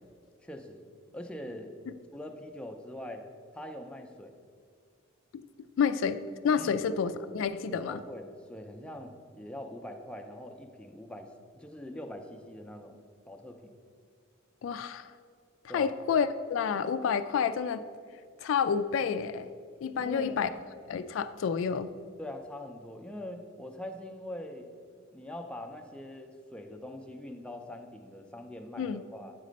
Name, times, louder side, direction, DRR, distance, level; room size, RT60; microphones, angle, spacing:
voice 1, 0.4-0.9 1.1-1.8 2.1-3.3 3.5-4.3 6.5-6.8 7.7-11.3 11.5-13.0 13.3-13.7 15.7-16.0 20.0-20.6 22.2-24.7 25.1-29.3, left 1 dB, 5° left, 3 dB, 0.5 m, -43 dB
voice 2, 5.8-8.0 14.6-15.1 15.7-17.8 18.4-19.5 19.8-20.5 20.9-21.9 28.8-29.0, left 6 dB, 70° left, 13 dB, 0.3 m, -29 dB
8.3 x 4.1 x 5.1 m, 2.1 s
head